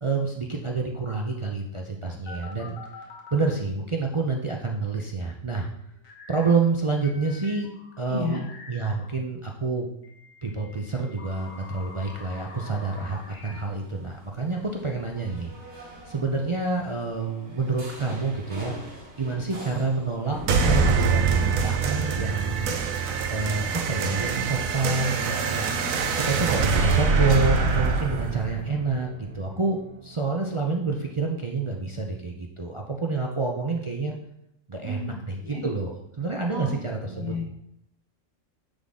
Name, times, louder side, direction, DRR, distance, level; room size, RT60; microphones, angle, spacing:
voice 1, 0.0-2.8 3.3-5.7 6.3-7.7 8.0-9.9 10.4-15.5 16.1-18.7 19.2-22.7 23.3-25.7 26.2-34.1 34.7-35.9 36.2-37.3, right 3 dB, 40° right, 0 dB, 0.5 m, -28 dB
sound 1, 2.2-3.5 6.0-6.5 7.0-9.1 10.0-13.6, left 3 dB, 80° left, 1.6 m, -46 dB
voice 2, 8.1-8.4 34.8-35.1 35.4-35.6 36.5-36.7 37.0-37.4, left 3 dB, 45° left, -6 dB, 2.0 m, -32 dB
sound 2, 11.2-24.4, right 1 dB, 55° right, 2.1 m, -46 dB
sound 3, 20.5-29.5, right 5 dB, 85° right, 1.2 m, -24 dB
9.9 x 3.9 x 3.7 m, 0.78 s
omnidirectional pair, 1.4 m